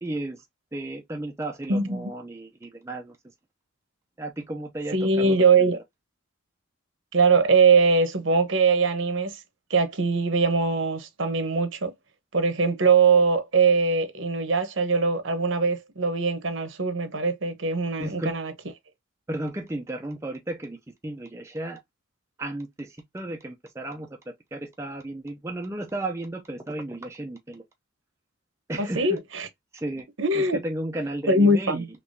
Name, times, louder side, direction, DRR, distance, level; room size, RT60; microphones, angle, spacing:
voice 1, 0.0-0.4 0.7-3.2 4.2-5.7 18.0-18.3 19.3-20.8 21.0-21.8 22.4-27.6 28.7-29.2 29.7-30.1 30.3-31.9, right 1 dB, 15° right, 0.5 m, -34 dB
voice 2, 1.7-2.1 4.9-5.8 7.1-9.4 9.7-11.9 12.3-18.5 28.8-29.5 30.2-30.6 31.3-31.9, right 4 dB, 70° right, 0.9 m, -22 dB
3.4 x 3.0 x 2.6 m
head